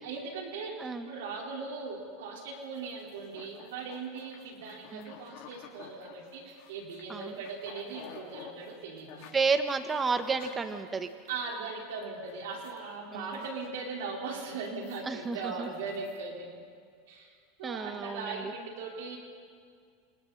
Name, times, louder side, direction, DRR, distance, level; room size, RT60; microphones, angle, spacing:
voice 1, 0.0-9.3 11.3-16.5 17.1-19.2, right 4 dB, 75° right, -1 dB, 4.4 m, -39 dB
sound 1, 2.5-11.4 11.8-12.0 12.3-12.8 13.2-14.1 14.5-16.2, left 7 dB, 60° left, 4.4 m, -52 dB
voice 2, 9.3-11.1 13.1-13.3 15.0-15.7 17.6-18.4, right 4 dB, 20° right, 8 dB, 1.6 m, -31 dB
27.5 x 27.0 x 4.3 m, 2.1 s
hypercardioid pair, 105°, 0 cm